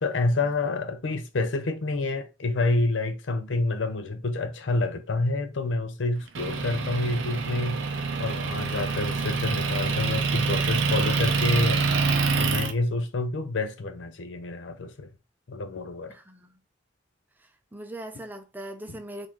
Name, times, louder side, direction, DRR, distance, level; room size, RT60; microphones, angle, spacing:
voice 1, 0.0-7.8 8.2-11.8 12.3-15.1 15.5-16.1, left 2 dB, 75° left, 0.6 m, -28 dB
Motor vehicle (road) / Engine, 6.3-12.7, right 4 dB, 80° right, 0.6 m, -26 dB
voice 2, 16.1-16.6 17.4-19.3, right 1 dB, 10° right, 0.5 m, -40 dB
3.9 x 2.6 x 3.0 m
head